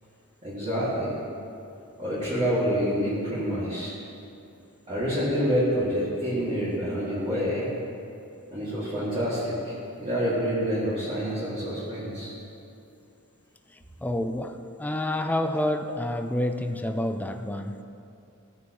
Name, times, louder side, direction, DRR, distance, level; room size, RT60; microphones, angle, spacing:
voice 1, 0.4-1.1 2.0-3.9 4.9-7.7 8.5-12.3, equal, 30° right, -11 dB, 2.2 m, -27 dB
voice 2, 13.7-17.8, left 1 dB, 5° left, 6 dB, 0.4 m, -29 dB
16.0 x 9.2 x 3.1 m, 2.7 s
head